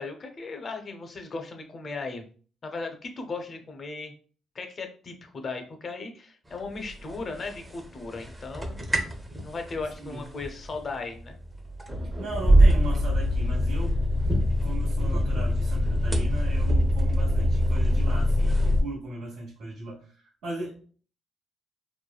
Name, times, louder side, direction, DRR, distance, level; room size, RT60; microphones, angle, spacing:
voice 1, 0.0-2.2 2.6-4.1 4.5-8.8 9.4-11.4, left 3 dB, 45° left, 4 dB, 0.6 m, -36 dB
sound 1, 7.1-7.7 8.0-18.8, equal, 15° right, 0.6 m, -23 dB
voice 2, 12.2-20.8, right 2 dB, 80° right, -6 dB, 1.1 m, -38 dB
3.1 x 2.1 x 2.3 m, 0.42 s
cardioid pair, 90°, 0 cm